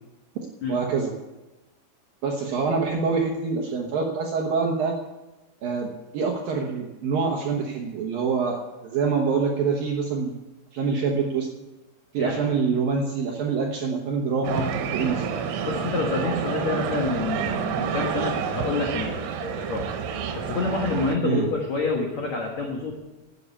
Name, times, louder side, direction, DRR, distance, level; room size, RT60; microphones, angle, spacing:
voice 1, 0.7-1.1 2.2-5.0 5.6-10.3 10.7-11.5 12.1-15.4 21.2-21.5, right 5 dB, 70° right, 0 dB, 2.3 m, -25 dB
sound 1, 14.4-21.2, right 7 dB, 85° right, 3.8 m, -29 dB
voice 2, 15.7-19.9 20.3-22.9, left 3 dB, 75° left, 0 dB, 1.6 m, -28 dB
12.5 x 8.8 x 8.3 m, 1.1 s
omnidirectional pair, 5.6 m